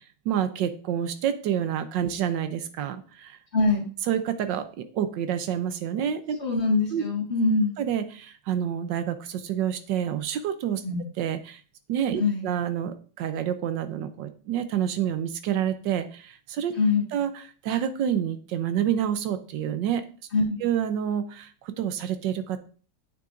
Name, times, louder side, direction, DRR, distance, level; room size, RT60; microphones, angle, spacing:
voice 1, 0.2-3.4 4.1-6.4 6.9-7.0 7.8-10.8 11.2-11.6 11.9-16.7 17.1-17.3 17.6-20.0 20.6-22.6, right 9 dB, 80° right, 10 dB, 1.4 m, -28 dB
voice 2, 3.5-3.8 6.4-7.7 10.8-11.1 12.2-12.5 16.8-17.1 20.3-20.6, left 3 dB, 35° left, 0 dB, 1.8 m, -23 dB
8.5 x 6.7 x 2.5 m, 0.39 s
omnidirectional pair, 2.0 m